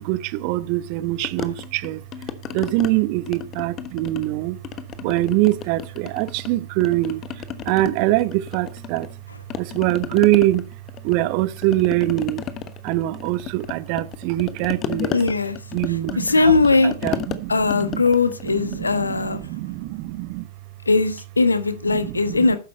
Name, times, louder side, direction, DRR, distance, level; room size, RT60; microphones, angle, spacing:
voice 1, 0.0-2.0 2.5-4.6 5.0-9.1 9.6-10.7 11.0-12.4 12.8-15.2 15.7-16.5 16.8-18.0 18.4-20.5 21.9-22.6, right 17 dB, 45° right, 0.8 m, -23 dB
sound 1, 1.2-2.9 3.3-4.3 4.6-6.5 6.8-9.2 9.5-19.3, left 10 dB, 30° left, 1.1 m, -33 dB
voice 2, 15.1-15.6 16.2-16.9 17.5-19.5 20.9-22.6, left 3 dB, 80° left, 1.2 m, -19 dB
12.5 x 9.8 x 4.3 m
figure-of-eight pair, 90°, 0 cm